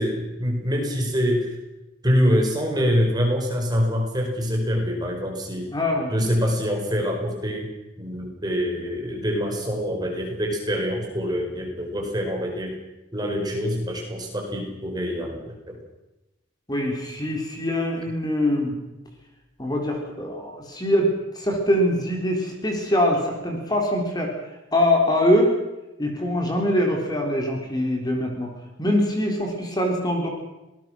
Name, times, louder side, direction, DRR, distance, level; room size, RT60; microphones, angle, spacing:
voice 1, 0.0-1.5 2.0-5.7 6.1-7.7 8.0-12.8 13.1-15.8, equal, 20° right, 1 dB, 4.9 m, -25 dB
voice 2, 5.7-6.1 16.7-18.7 19.6-24.3 24.7-25.5 26.0-28.5 28.8-30.3, left 1 dB, 20° left, 1 dB, 3.8 m, -23 dB
25.5 x 19.5 x 6.3 m, 1.0 s
head